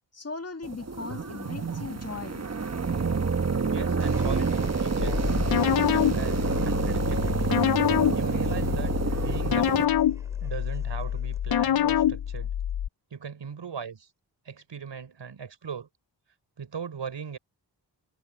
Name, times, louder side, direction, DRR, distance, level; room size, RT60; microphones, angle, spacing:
voice 1, 0.1-2.4, left 4 dB, 35° left, 1.8 m, -38 dB
sound 1, 0.6-9.8, right 4 dB, 35° right, 1.4 m, -28 dB
voice 2, 3.7-5.4 5.9-7.6 8.1-10.0 10.4-12.5 13.1-14.1 14.4-15.9 16.6-17.4, right 6 dB, 85° right, 5.8 m, -38 dB
sound 2, 4.1-12.7, right 1 dB, 5° right, 4.6 m, -42 dB
sound 3, 5.0-12.9, left 10 dB, 60° left, 0.6 m, -26 dB
wide cardioid pair, 75°, 42 cm